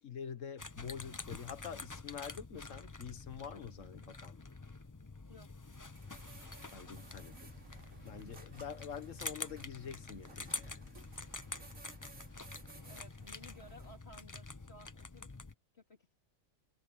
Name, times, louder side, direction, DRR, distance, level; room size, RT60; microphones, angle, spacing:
voice 1, 0.0-4.4 6.7-7.5 8.0-10.9, left 7 dB, 60° left, 1.6 m, -46 dB
sound 1, 0.6-15.5, left 3 dB, 20° left, 0.5 m, -47 dB
sound 2, 5.7-14.0, right 3 dB, 60° right, 3.9 m, -58 dB
sound 3, 6.0-12.4, equal, 5° right, 4.1 m, -66 dB
voice 2, 12.9-15.3 15.7-16.1, left 1 dB, 45° left, 3.7 m, -56 dB
omnidirectional pair, 1.5 m